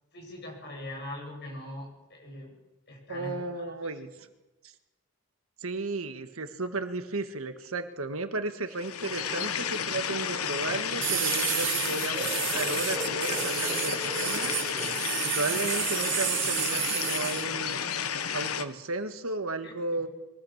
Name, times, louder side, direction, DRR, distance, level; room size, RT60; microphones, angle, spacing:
voice 1, 0.1-2.6 2.9-3.8 19.6-20.0, left 1 dB, 50° left, 0 dB, 7.3 m, -42 dB
voice 2, 3.1-4.1 4.6-4.7 5.6-14.5 15.2-17.8 18.3-20.1, right 3 dB, 75° right, 8 dB, 1.6 m, -34 dB
sound 1, 8.7-18.6, left 7 dB, 85° left, 1.2 m, -31 dB
sound 2, 11.0-17.4, right 14 dB, 60° right, 1.1 m, -31 dB
sound 3, 12.1-15.8, equal, 20° right, 2.1 m, -40 dB
23.0 x 16.0 x 7.4 m, 1.1 s
head